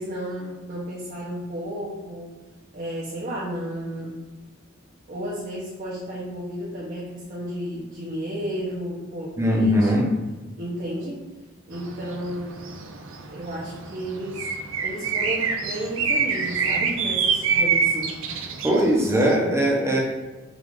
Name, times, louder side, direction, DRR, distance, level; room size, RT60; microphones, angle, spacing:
voice 1, 0.0-2.3 2.7-4.2 5.1-9.9 10.6-11.2 11.7-12.6 13.3-14.5 14.8-18.2, equal, 45° right, -6 dB, 0.8 m, -32 dB
voice 2, 9.4-10.1 18.6-20.0, equal, 15° right, -2 dB, 0.7 m, -20 dB
sound 1, 11.7-19.4, right 5 dB, 75° right, 0.5 m, -26 dB
4.9 x 2.5 x 3.6 m, 1.1 s
head